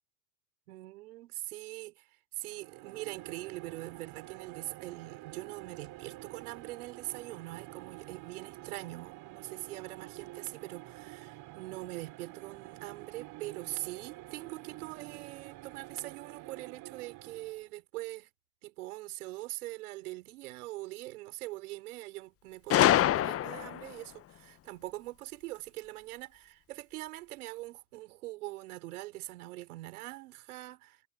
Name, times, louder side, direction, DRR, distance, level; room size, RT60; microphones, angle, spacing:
voice 1, 0.7-18.3 18.6-31.0, right 19 dB, 75° right, 4.2 m, -43 dB
sound 1, 2.4-17.7, right 18 dB, 55° right, 3.7 m, -48 dB
Gunshot gunfire, 22.7-23.9, left 13 dB, 30° left, 0.7 m, -25 dB
hypercardioid pair, 80°, 44 cm